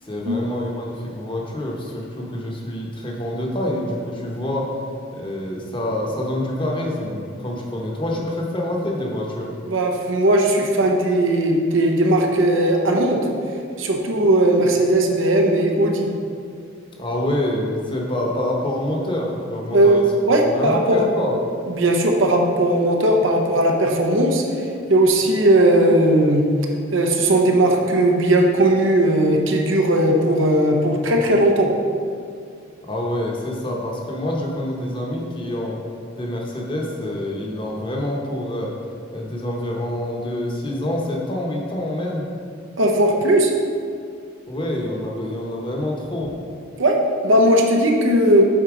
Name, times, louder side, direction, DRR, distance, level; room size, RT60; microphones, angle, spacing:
voice 1, 0.0-4.7 5.1-9.5 16.9-20.0 20.4-21.4 32.8-35.8 36.2-38.7 39.1-42.3 44.5-46.3, left 1 dB, 25° left, -1 dB, 0.9 m, -26 dB
voice 2, 9.7-13.2 13.8-16.1 19.7-20.0 20.3-21.1 21.7-24.4 24.9-26.4 26.9-31.7 42.8-43.5 46.8-47.0 47.2-48.5, right 1 dB, 75° right, 1 dB, 0.8 m, -17 dB
7.2 x 3.9 x 4.9 m, 2.3 s
head